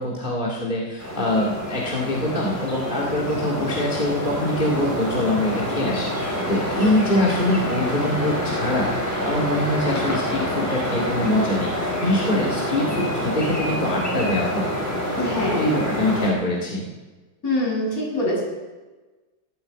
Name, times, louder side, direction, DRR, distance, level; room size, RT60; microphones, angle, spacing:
voice 1, 0.0-8.9 9.2-14.7 15.5-16.9, left 1 dB, 25° left, -3 dB, 2.3 m, -24 dB
sound 1, 1.0-16.3, equal, 10° left, 5.5 m, -27 dB
voice 2, 15.2-15.7 17.4-18.4, left 1 dB, 50° left, -4 dB, 7.7 m, -24 dB
13.5 x 13.0 x 7.7 m, 1.2 s
omnidirectional pair, 2.0 m